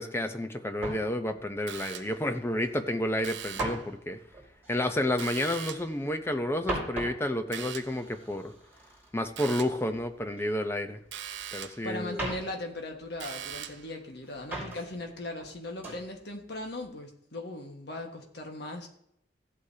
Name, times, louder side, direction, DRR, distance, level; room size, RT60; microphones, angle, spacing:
voice 1, 0.0-4.2 4.7-8.5 9.1-11.0 11.5-12.2, left 1 dB, 15° left, 8 dB, 0.7 m, -30 dB
sound 1, 0.8-2.8 3.1-5.9 6.2-10.5 10.7-11.7 12.0-13.8 14.2-15.1 15.4-16.1 16.5-16.8, right 1 dB, 10° right, 4.7 m, -41 dB
sound 2, 1.7-2.3 3.2-3.9 5.2-6.0 7.5-8.1 9.4-9.9 11.1-11.9 13.2-13.9, right 10 dB, 80° right, 0.6 m, -41 dB
voice 2, 11.8-18.9, left 2 dB, 65° left, 2 dB, 1.6 m, -38 dB
15.5 x 8.2 x 2.8 m, 0.72 s
head